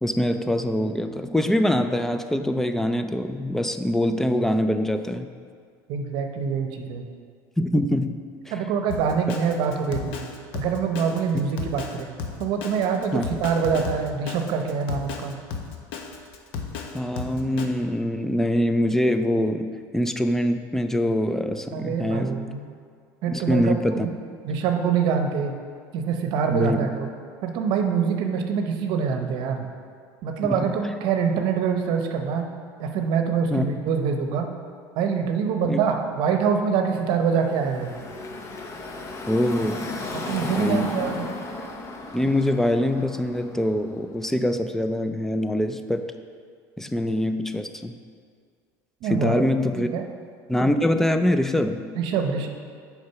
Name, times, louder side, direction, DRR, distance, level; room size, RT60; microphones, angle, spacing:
voice 1, 0.0-5.3 7.6-8.2 8.5-8.6 13.1-13.2 16.9-19.7 19.9-22.4 23.3-24.1 26.5-26.9 30.4-30.7 33.5-33.7 35.7-35.8 39.3-39.8 40.6-41.0 42.1-46.0 46.8-47.9 49.0-49.9 50.5-51.8, left 1 dB, 5° left, 8 dB, 0.4 m, -24 dB
voice 2, 5.9-7.0 8.5-10.2 10.5-12.1 12.4-15.4 21.7-22.6 23.2-24.1 24.4-25.5 25.9-27.1 27.4-29.7 30.2-32.5 32.8-34.5 35.0-37.9 40.1-41.3 49.0-49.4 49.8-50.1 51.9-52.5, right 6 dB, 60° right, 5 dB, 0.8 m, -25 dB
Drum kit, 8.9-17.7, left 5 dB, 70° left, 0.8 m, -34 dB
Car passing by / Traffic noise roadway noise, 37.1-44.1, left 2 dB, 35° left, 0.8 m, -35 dB
6.5 x 4.9 x 5.7 m, 2.1 s
supercardioid pair, 110°, 9 cm